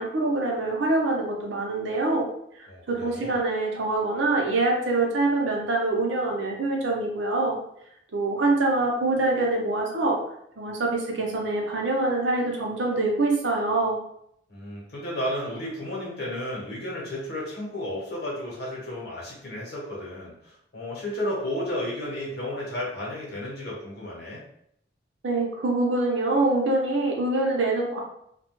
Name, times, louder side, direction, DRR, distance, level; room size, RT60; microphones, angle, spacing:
voice 1, 0.0-2.3 2.6-7.6 8.1-10.2 10.6-14.0 25.2-28.0, right 2 dB, 85° right, -1 dB, 0.7 m, -25 dB
voice 2, 2.7-3.4 14.5-24.4, left 1 dB, 60° left, -5 dB, 1.0 m, -33 dB
2.3 x 2.1 x 3.0 m, 0.72 s
head